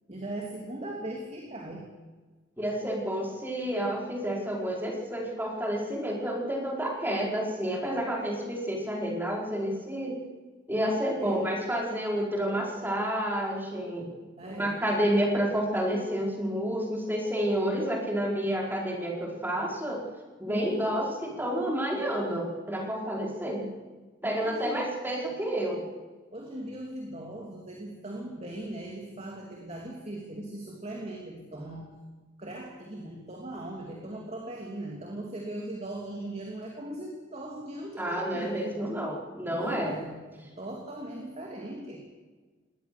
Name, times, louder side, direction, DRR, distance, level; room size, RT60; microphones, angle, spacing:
voice 1, 0.1-1.9 11.2-11.4 14.4-14.8 20.5-20.8 24.2-24.8 26.3-31.9 32.4-38.9 39.5-42.0, right 1 dB, 35° right, 0 dB, 2.9 m, -39 dB
voice 2, 2.6-10.2 10.7-14.1 14.5-20.0 20.4-23.7 24.2-25.9 38.0-40.0, equal, 10° right, -1 dB, 4.8 m, -30 dB
21.5 x 18.5 x 6.9 m, 1.3 s
head